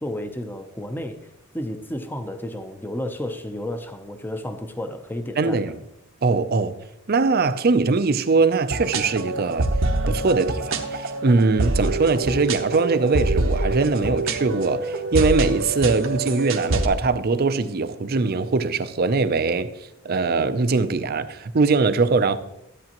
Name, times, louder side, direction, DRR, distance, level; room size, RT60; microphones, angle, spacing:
voice 1, 0.0-1.2 1.5-5.7, left 1 dB, 10° left, 0.7 m, -32 dB
voice 2, 5.4-5.7 6.2-6.7 7.1-9.7 10.1-19.7 20.0-22.4, right 4 dB, 50° right, 0.5 m, -21 dB
sound 1, 8.7-16.9, right 2 dB, 70° right, 1.0 m, -25 dB
13.0 x 8.5 x 3.0 m
head